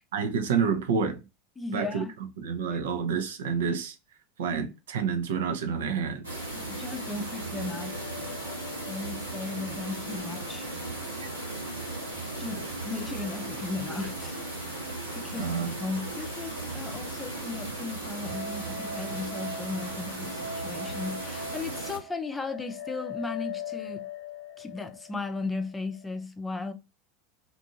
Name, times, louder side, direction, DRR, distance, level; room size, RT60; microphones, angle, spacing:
voice 1, 0.1-1.2 1.7-2.1 2.4-3.9 4.4-6.3 11.2-11.3 15.4-15.8, right 6 dB, 70° right, 0.5 m, -28 dB
voice 2, 1.6-2.1 6.6-8.0 8.9-10.7 12.4-15.5 15.8-24.0 24.6-26.7, left 3 dB, 15° left, 0.6 m, -36 dB
sound 1, 6.2-22.0, right 2 dB, 90° right, 1.1 m, -36 dB
sound 2, 7.5-10.7 10.9-11.0 18.2-26.2, left 3 dB, 60° left, 0.7 m, -41 dB
2.6 x 2.5 x 2.7 m
figure-of-eight pair, 80°, 0 cm